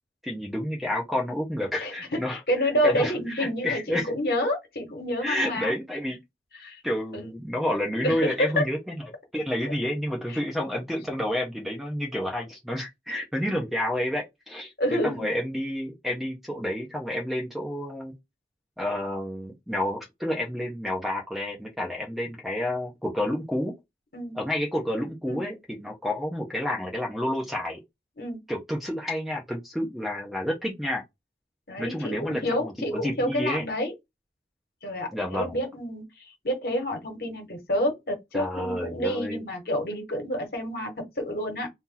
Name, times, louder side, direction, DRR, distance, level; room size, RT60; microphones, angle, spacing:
voice 1, 0.2-2.4 2.8-4.1 5.2-6.2 6.8-9.0 9.3-18.1 18.8-23.7 24.3-27.8 28.5-31.0 31.8-33.6 35.1-35.6 38.3-39.4, left 1 dB, ahead, 0.7 m, -30 dB
voice 2, 1.8-5.7 6.6-6.8 7.1-7.3 8.0-8.6 10.3-10.4 13.5-13.6 14.8-15.3 24.1-24.4 25.3-25.4 28.2-28.4 31.7-33.9 34.8-41.7, equal, 60° left, 1.4 m, -29 dB
2.8 x 2.6 x 3.8 m
head